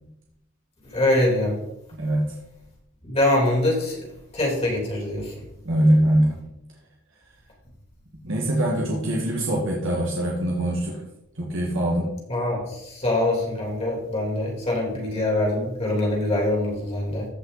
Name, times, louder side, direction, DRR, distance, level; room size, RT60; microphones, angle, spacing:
voice 1, 0.9-1.5 3.0-4.1 4.3-5.4 12.3-17.3, left 1 dB, 30° left, -3 dB, 3.4 m, -24 dB
voice 2, 5.7-6.4 8.2-11.0 11.4-12.1, right 1 dB, 65° right, -2 dB, 1.8 m, -22 dB
14.5 x 5.5 x 4.1 m, 0.86 s
head